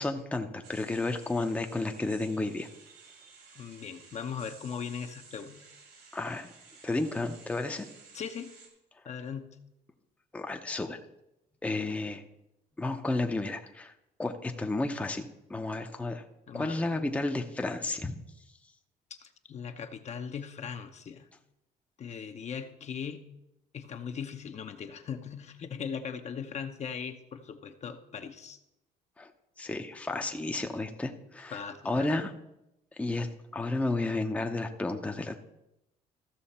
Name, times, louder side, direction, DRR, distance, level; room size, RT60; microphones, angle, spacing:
voice 1, 0.0-2.7 6.1-6.5 6.8-7.9 10.3-11.0 11.6-12.2 12.8-13.9 14.2-16.2 16.5-18.2 29.2-29.3 29.6-32.3 32.9-33.3 33.5-35.4, left 2 dB, 10° left, 5 dB, 0.7 m, -32 dB
sound 1, 0.6-8.7, right 5 dB, 75° right, 2.7 m, -54 dB
voice 2, 3.5-5.6 8.1-8.5 9.0-9.6 16.5-16.9 19.1-21.3 22.0-23.2 23.7-28.6 31.5-32.2, left 7 dB, 40° left, 6 dB, 0.8 m, -39 dB
14.5 x 6.3 x 4.3 m, 0.88 s
cardioid pair, 110°, 17 cm